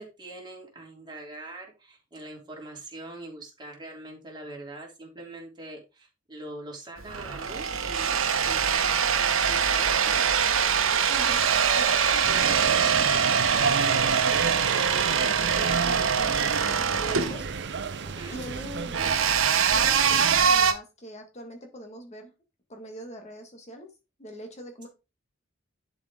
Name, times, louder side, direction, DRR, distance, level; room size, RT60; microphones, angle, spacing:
voice 1, 0.0-8.8 9.4-10.5 18.0-18.4, right 2 dB, 25° right, -1 dB, 3.2 m, -43 dB
sound 1, 7.0-20.7, right 7 dB, 85° right, 1.0 m, -24 dB
voice 2, 11.1-17.5 18.3-19.0 19.7-22.3 22.7-23.9 24.2-24.9, equal, 35° left, 3 dB, 1.6 m, -42 dB
sound 2, 12.2-20.5, right 5 dB, 60° right, 0.6 m, -32 dB
11.0 x 4.9 x 3.6 m, 0.27 s
head